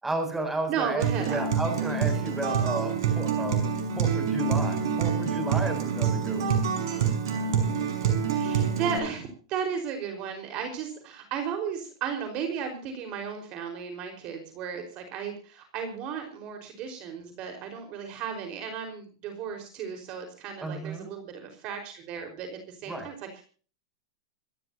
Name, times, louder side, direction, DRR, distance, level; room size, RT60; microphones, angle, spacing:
voice 1, 0.0-3.7 4.0-6.6 20.6-21.1 22.9-23.1, right 2 dB, 10° right, 6 dB, 7.8 m, -33 dB
voice 2, 0.7-1.5 2.1-2.3 8.3-23.4, right 7 dB, 45° right, 5 dB, 4.8 m, -35 dB
Acoustic guitar, 1.0-9.0, right 6 dB, 70° right, 5.8 m, -26 dB
26.5 x 14.0 x 2.9 m, 0.40 s
hypercardioid pair, 110°, 2 cm